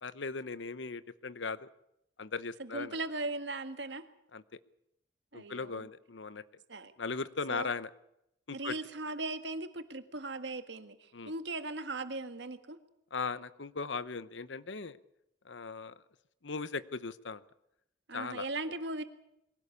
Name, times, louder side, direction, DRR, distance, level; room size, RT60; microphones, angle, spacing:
voice 1, 0.0-1.7 2.2-3.0 4.3-4.4 5.3-6.4 7.0-7.9 8.5-8.7 11.1-11.3 13.1-15.0 15.5-15.9 16.4-17.4 18.1-18.4, left 4 dB, 85° left, 15 dB, 0.9 m, -38 dB
voice 2, 2.6-4.0 5.3-5.9 6.7-6.9 7.5-7.7 8.5-12.8 18.1-19.0, right 2 dB, 70° right, 9 dB, 1.7 m, -38 dB
23.0 x 17.0 x 8.4 m, 0.81 s
head